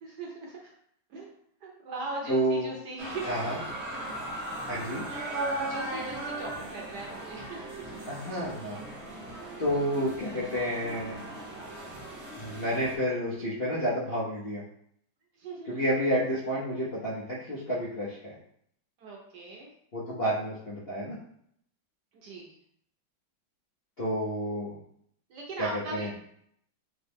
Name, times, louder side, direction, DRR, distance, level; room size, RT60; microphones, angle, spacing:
voice 1, 0.0-0.7 1.1-1.3 1.6-3.6 4.0-4.1 5.6-7.9 15.3-15.8 19.0-19.7 22.1-22.5 25.3-26.2, right 2 dB, 65° right, -1 dB, 1.1 m, -40 dB
voice 2, 2.3-2.7 3.2-3.6 4.7-5.0 8.1-8.8 9.6-11.2 12.4-14.6 15.7-18.3 19.9-21.2 24.0-24.8 25.6-26.1, equal, 50° left, -9 dB, 0.7 m, -30 dB
sound 1, 3.0-13.0, right 1 dB, 45° right, 1.0 m, -37 dB
3.6 x 3.1 x 3.5 m, 0.69 s
omnidirectional pair, 2.2 m